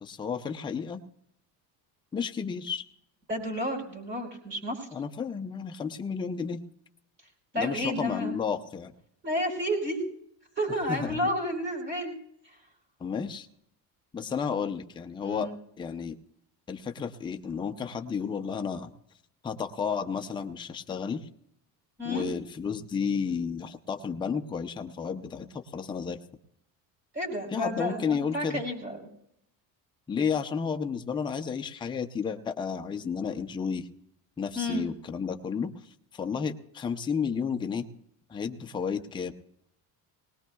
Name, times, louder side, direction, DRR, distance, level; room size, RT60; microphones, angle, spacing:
voice 1, 0.0-1.0 2.1-2.9 4.9-6.6 7.5-8.9 10.9-11.3 13.0-13.5 14.1-15.5 15.8-16.1 16.7-18.9 19.4-21.3 22.0-26.2 27.5-28.6 30.1-33.9 34.4-35.7 36.1-37.9 38.3-39.3, left 6 dB, 10° left, 5 dB, 0.5 m, -32 dB
voice 2, 3.3-4.9 7.5-8.3 9.2-10.0 10.6-12.2 15.2-15.6 22.0-22.3 27.1-29.0 34.5-34.9, equal, 25° right, -1 dB, 4.9 m, -31 dB
21.5 x 19.5 x 2.3 m, 0.76 s
cardioid pair, 175°, 42 cm